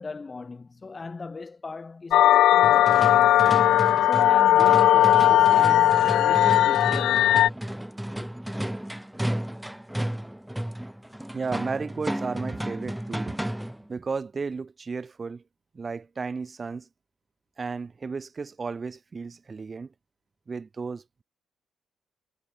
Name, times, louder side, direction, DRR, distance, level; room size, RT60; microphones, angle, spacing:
voice 1, 0.0-3.5 4.0-7.4 8.2-8.3, left 4 dB, 30° left, 5.5 m, -38 dB
sound 1, 2.1-7.5, left 13 dB, 80° left, 0.4 m, -18 dB
sound 2, 2.6-13.9, right 1 dB, 5° right, 1.5 m, -33 dB
voice 2, 11.3-13.4 13.9-15.4 15.7-16.9 17.6-19.9 20.5-21.2, right 4 dB, 35° right, 4.6 m, -34 dB
cardioid pair, 90°, 0 cm